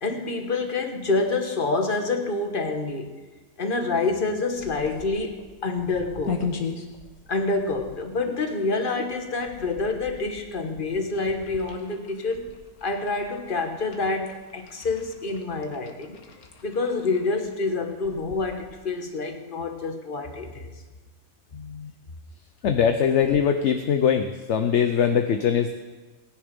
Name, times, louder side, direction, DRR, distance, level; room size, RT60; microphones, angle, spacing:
voice 1, 0.0-3.1 3.6-6.4 7.3-12.5 12.8-16.2 16.6-20.7, left 3 dB, 35° left, 5 dB, 1.5 m, -27 dB
sound 1, 4.5-19.0, left 5 dB, 80° left, 1.8 m, -40 dB
voice 2, 21.5-21.9 22.6-25.7, left 7 dB, 60° left, 6 dB, 1.0 m, -22 dB
18.5 x 10.5 x 5.3 m, 1.2 s
omnidirectional pair, 1.5 m